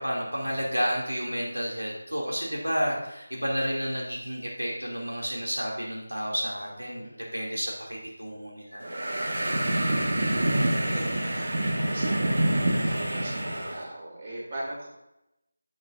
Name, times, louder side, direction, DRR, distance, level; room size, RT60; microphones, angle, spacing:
voice 1, 0.0-7.1 7.3-8.8, equal, 85° right, -3 dB, 2.7 m, -31 dB
sound 1, 8.8-13.8, right 1 dB, 55° right, 1.7 m, -26 dB
voice 2, 10.0-14.9, right 1 dB, 35° right, -4 dB, 3.1 m, -40 dB
9.7 x 8.0 x 2.6 m, 0.87 s
figure-of-eight pair, 165°, 0 cm